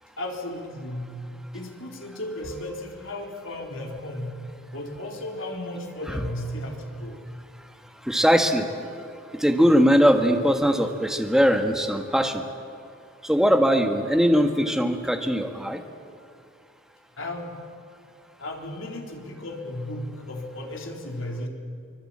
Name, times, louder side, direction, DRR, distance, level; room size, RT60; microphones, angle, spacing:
voice 1, 0.2-1.3 1.5-4.4 4.7-7.4 17.2-17.6 18.4-21.5, left 1 dB, 80° left, 1 dB, 3.9 m, -34 dB
voice 2, 8.0-8.7 9.3-12.4 13.2-15.8, equal, 5° right, 4 dB, 1.4 m, -20 dB
24.5 x 22.0 x 8.7 m, 2.4 s
head